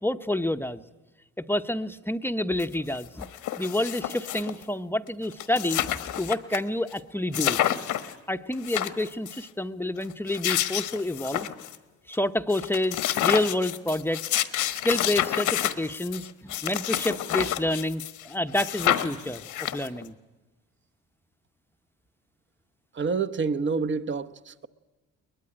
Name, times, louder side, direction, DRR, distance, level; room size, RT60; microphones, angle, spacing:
voice 1, 0.0-0.8 1.4-3.3 3.6-7.6 8.0-11.5 12.1-14.4 14.7-20.1, left 1 dB, 5° left, 0.8 m, -29 dB
sound 1, 2.6-2.7 3.0-4.6 5.1-5.2 5.3-6.6 6.9-7.0 7.3-8.1 8.5-9.4 10.1-11.8 12.1-12.2 12.5-18.3 18.5-20.1, left 12 dB, 85° left, 1.4 m, -29 dB
voice 2, 22.9-24.7, right 5 dB, 40° right, 1.0 m, -28 dB
21.5 x 20.5 x 10.0 m
cardioid pair, 90°, 30 cm